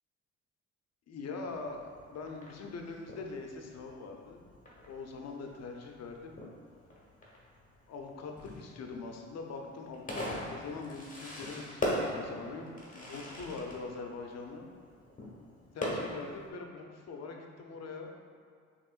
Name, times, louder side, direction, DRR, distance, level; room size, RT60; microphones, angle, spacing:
voice 1, 1.1-4.4 4.9-6.4 7.9-14.7 15.7-18.1, left 4 dB, 60° left, 2 dB, 0.6 m, -43 dB
Fireworks, 1.5-16.5, left 1 dB, 25° left, 1.2 m, -41 dB
6.4 x 3.0 x 2.4 m, 2.2 s
cardioid pair, 90°, 30 cm